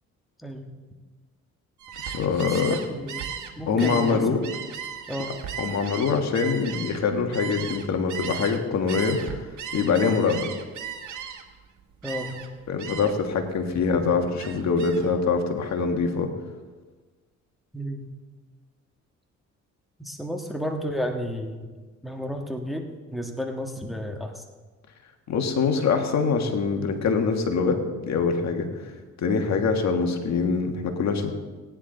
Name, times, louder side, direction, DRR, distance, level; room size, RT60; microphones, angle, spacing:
voice 1, 0.4-0.7 2.6-3.2 3.6-4.5 5.1-5.4 12.0-12.5 17.7-18.1 20.0-21.6 22.0-24.4, equal, ahead, 2 dB, 1.5 m, -32 dB
Gull seagull, 1.8-8.6 8.9-11.6 12.0-12.5 12.8-13.3 13.6-15.1, right 8 dB, 75° right, 1.4 m, -36 dB
voice 2, 2.1-2.8 3.7-4.4 5.6-9.4 9.7-10.5 12.7-16.3 25.3-28.7 29.2-31.3, left 5 dB, 65° left, 4 dB, 1.6 m, -24 dB
18.0 x 10.5 x 3.9 m, 1.3 s
cardioid pair, 90°, 30 cm